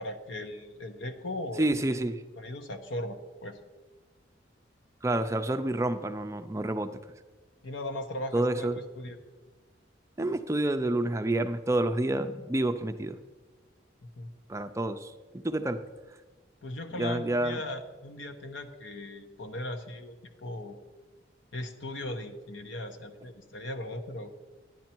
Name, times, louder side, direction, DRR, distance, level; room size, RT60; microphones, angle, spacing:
voice 1, 0.0-1.7 2.4-3.6 7.6-8.7 9.0-9.2 14.0-14.3 16.6-20.8 21.5-24.3, left 1 dB, 85° left, 7 dB, 1.0 m, -38 dB
voice 2, 1.6-2.2 5.0-6.9 8.3-8.8 10.2-13.2 14.5-15.8 16.9-17.6, right 1 dB, 15° right, 8 dB, 0.4 m, -28 dB
10.5 x 10.0 x 4.5 m, 1.3 s
head